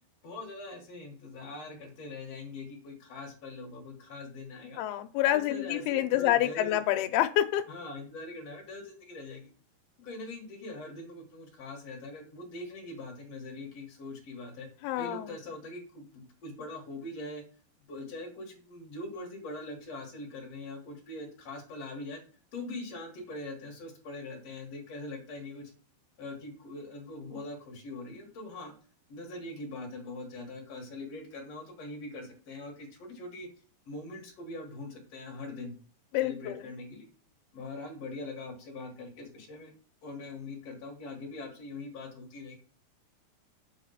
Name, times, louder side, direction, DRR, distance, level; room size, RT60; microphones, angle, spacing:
voice 1, 0.2-4.8 5.3-6.8 7.7-9.5 10.0-14.7 15.0-17.4 17.9-22.2 22.5-25.7 26.2-28.7 29.1-33.5 33.9-35.7 36.2-37.1 37.5-39.7 40.0-42.6, left 2 dB, 55° left, 2 dB, 2.0 m, -42 dB
voice 2, 4.8-7.6 14.8-15.3 36.1-36.6, left 13 dB, 80° left, 7 dB, 2.5 m, -27 dB
7.6 x 5.0 x 5.5 m, 0.40 s
omnidirectional pair, 4.7 m